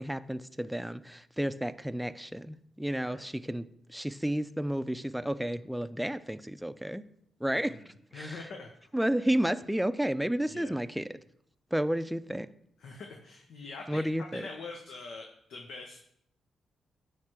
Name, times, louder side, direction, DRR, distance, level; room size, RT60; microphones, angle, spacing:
voice 1, 0.0-7.0 7.4-8.4 8.9-11.2 11.7-12.5 13.9-14.5, right 1 dB, 5° right, 12 dB, 0.5 m, -32 dB
voice 2, 7.5-8.7 10.5-10.7 12.8-16.0, left 3 dB, 75° left, 2 dB, 0.8 m, -44 dB
9.5 x 3.3 x 6.0 m, 0.71 s
supercardioid pair, 55°, 0 cm